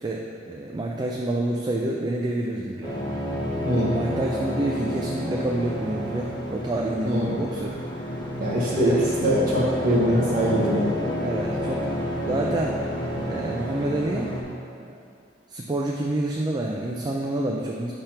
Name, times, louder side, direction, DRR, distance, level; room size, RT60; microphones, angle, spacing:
voice 1, 0.0-3.0 3.9-7.8 8.7-9.0 11.2-12.0 12.3-12.8 13.3-14.4 14.8-15.0 15.5-17.9, right 1 dB, 20° right, -1 dB, 0.3 m, -28 dB
sound 1, 2.8-14.4, equal, 25° left, 0.8 m, -30 dB
voice 2, 3.6-4.0 7.0-7.4 8.4-10.9, equal, 50° right, -7 dB, 0.9 m, -22 dB
5.7 x 3.4 x 5.7 m, 2.3 s
head